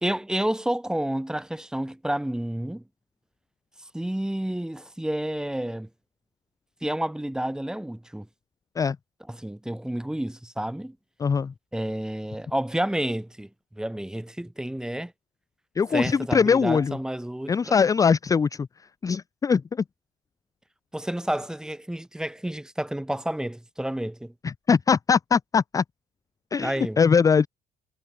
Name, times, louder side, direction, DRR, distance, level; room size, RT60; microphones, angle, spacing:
voice 1, 0.0-2.8 3.9-5.9 6.8-8.3 9.3-11.0 11.7-13.5 13.8-15.1 15.9-17.8 20.9-24.3 26.6-27.0, right 1 dB, 5° right, 1.1 m, -30 dB
voice 2, 11.2-11.5 15.8-17.0 17.5-18.7 19.0-19.8 24.4-25.8 26.5-27.5, left 6 dB, 20° left, 0.4 m, -22 dB
cardioid pair, 110°, 17 cm